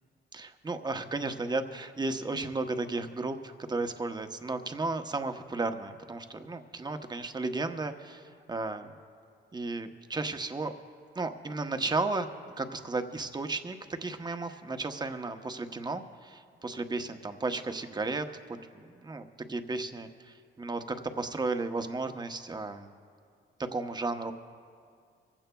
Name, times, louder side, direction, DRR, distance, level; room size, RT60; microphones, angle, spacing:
voice 1, 0.3-8.9 9.5-10.7 11.1-12.3 12.6-18.3 18.7-22.9 23.7-24.3, right 3 dB, 20° right, 7 dB, 0.9 m, -34 dB
25.0 x 16.0 x 2.3 m, 2.2 s
cardioid pair, 90°, 20 cm